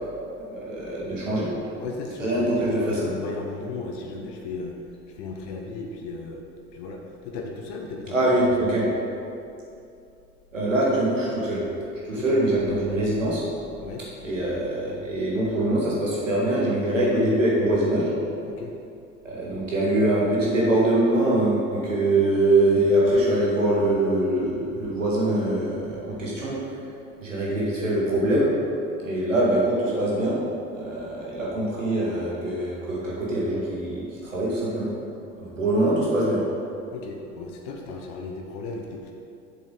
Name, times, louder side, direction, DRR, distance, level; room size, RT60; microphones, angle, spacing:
voice 1, 0.5-1.5 2.2-3.1 8.1-8.8 10.5-11.6 12.1-13.4 14.2-18.1 19.2-26.6 27.2-28.5 29.0-30.4 30.7-34.9 35.4-36.4, right 1 dB, 85° right, -5 dB, 1.9 m, -23 dB
voice 2, 1.8-4.8 5.1-6.4 6.7-8.8 12.1-12.4 13.8-14.0 18.4-18.7 36.9-39.1, left 3 dB, 60° left, 1 dB, 1.0 m, -35 dB
7.6 x 7.2 x 4.0 m, 2.6 s
figure-of-eight pair, 60°, 37 cm